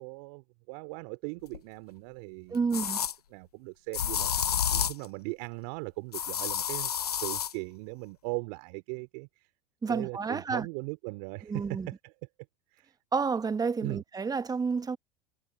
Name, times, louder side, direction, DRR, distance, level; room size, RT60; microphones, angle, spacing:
voice 1, 0.0-2.7 3.3-4.3 4.7-9.5 9.9-12.1 12.7-12.9 13.8-14.0, right 33 dB, 60° right, 3.4 m, -39 dB
sound 1, 1.5-1.6 2.7-3.1 3.9-5.0 6.1-7.5, left 8 dB, 85° left, 1.1 m, -30 dB
voice 2, 2.5-3.0 9.8-10.7 11.5-11.9 13.1-15.0, right 5 dB, 20° right, 1.5 m, -30 dB
hypercardioid pair, 80°, 19 cm